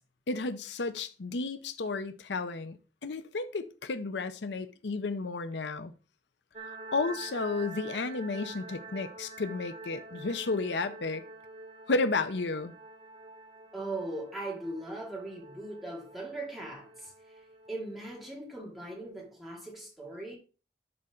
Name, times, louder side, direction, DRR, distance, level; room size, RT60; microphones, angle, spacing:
voice 1, 0.3-5.9 6.9-11.2 11.9-12.7, left 3 dB, 80° left, 0.6 m, -32 dB
sound 1, 6.5-18.3, right 3 dB, 35° right, 1.1 m, -47 dB
voice 2, 13.7-17.3 17.7-20.4, right 2 dB, ahead, 2.6 m, -39 dB
12.0 x 4.3 x 3.8 m
head